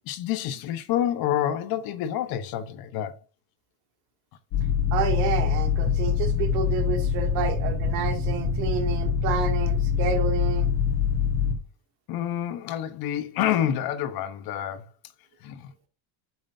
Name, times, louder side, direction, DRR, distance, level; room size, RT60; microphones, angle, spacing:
voice 1, 0.1-3.2 12.1-14.9 15.4-15.7, left 11 dB, 50° left, 1.1 m, -28 dB
sound 1, 4.5-11.5, left 7 dB, 80° left, 2.1 m, -24 dB
voice 2, 4.9-10.7, right 7 dB, 85° right, 2.5 m, -29 dB
9.1 x 6.1 x 2.7 m
cardioid pair, 170°, 46 cm